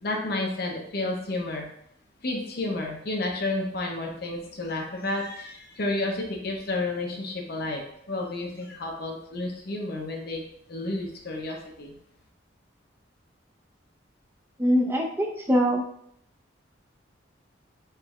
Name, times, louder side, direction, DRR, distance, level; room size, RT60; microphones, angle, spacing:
voice 1, 0.0-1.7 2.2-12.0, left 2 dB, 55° left, 0 dB, 0.7 m, -31 dB
voice 2, 14.6-15.8, equal, 10° right, 1 dB, 0.5 m, -23 dB
4.4 x 3.1 x 2.4 m, 0.70 s
head